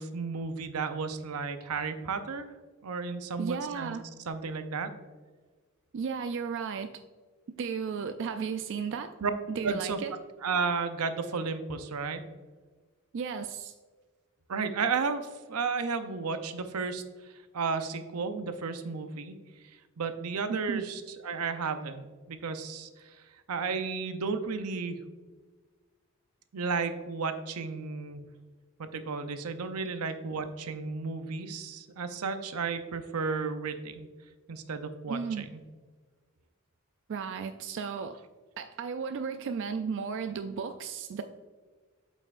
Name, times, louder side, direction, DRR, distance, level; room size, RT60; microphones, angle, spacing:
voice 1, 0.0-2.5 2.8-4.0 4.3-4.9 9.2-9.3 9.6-10.0 10.4-12.2 14.5-19.4 20.0-23.2 23.5-25.0 26.5-28.2 28.8-34.1 34.5-35.6, right 5 dB, 90° right, 9 dB, 0.7 m, -33 dB
voice 2, 3.4-4.0 5.9-6.9 7.6-9.1 9.5-10.1 13.1-13.7 20.5-20.9 35.1-35.5 37.1-38.2 38.6-41.2, right 6 dB, 55° right, 8 dB, 0.3 m, -34 dB
8.3 x 5.4 x 2.5 m, 1.4 s
head